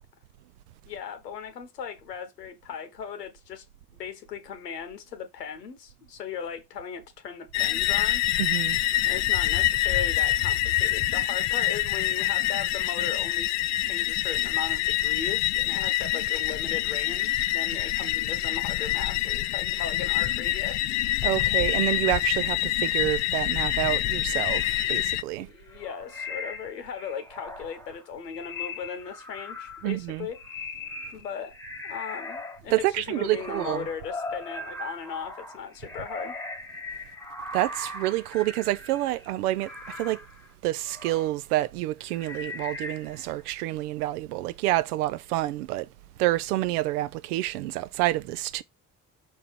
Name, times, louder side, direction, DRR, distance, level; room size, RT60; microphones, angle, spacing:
voice 1, 0.9-3.6 3.9-8.2 9.1-13.5 13.8-20.8 24.8-24.9 25.4-30.4 31.1-31.5 31.8-36.4, left 7 dB, 80° left, 0.9 m, -37 dB
sound 1, 7.5-25.2, left 15 dB, 40° left, 0.4 m, -26 dB
voice 2, 8.4-8.8 21.2-25.5 29.8-30.3 32.7-33.9 37.5-40.2 40.6-45.9 46.2-48.6, right 16 dB, 70° right, 0.6 m, -28 dB
sound 2, 24.4-24.9 25.6-32.6 32.9-41.3 42.0-43.4, left 2 dB, 5° left, 1.5 m, -39 dB
6.1 x 3.6 x 4.4 m
figure-of-eight pair, 45°, 47 cm